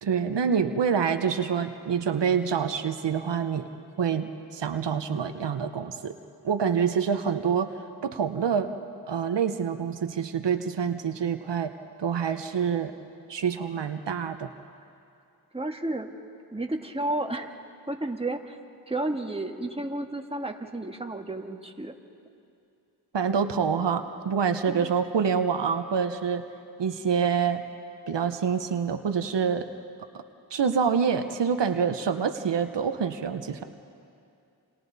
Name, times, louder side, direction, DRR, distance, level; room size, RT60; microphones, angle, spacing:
voice 1, 0.0-3.7 4.0-6.1 6.4-7.7 8.0-8.7 9.1-11.7 12.0-12.9 13.3-14.5 23.1-26.5 26.8-27.6 28.1-29.7 30.1-30.2 30.5-33.6, right 7 dB, 85° right, 8 dB, 0.9 m, -26 dB
voice 2, 15.5-16.1 16.5-17.5 17.9-18.6 18.9-21.9 24.7-24.9, right 2 dB, 15° right, 3 dB, 1.7 m, -32 dB
28.5 x 28.5 x 4.1 m, 2.5 s
cardioid pair, 55°, 41 cm